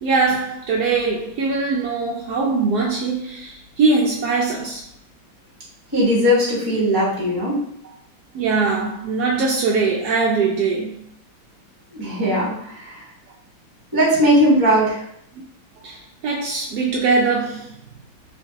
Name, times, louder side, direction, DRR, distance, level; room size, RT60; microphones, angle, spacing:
voice 1, 0.0-4.8 8.3-10.9 15.8-17.7, right 4 dB, 75° right, -2 dB, 0.9 m, -21 dB
voice 2, 5.9-7.6 11.9-13.0 13.9-15.0, equal, 20° right, -6 dB, 0.7 m, -18 dB
4.1 x 2.9 x 2.7 m, 0.68 s
omnidirectional pair, 2.2 m